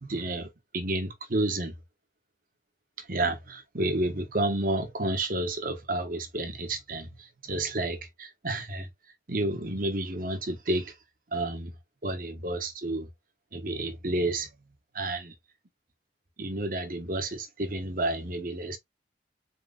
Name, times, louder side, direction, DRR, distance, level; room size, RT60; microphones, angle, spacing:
voice 1, 0.0-1.7 3.0-8.9 9.3-10.9 11.3-11.7 12.0-13.1 13.5-14.5 14.9-15.3 16.4-18.8, right 2 dB, 50° right, 1.1 m, -30 dB
4.5 x 3.9 x 2.3 m
head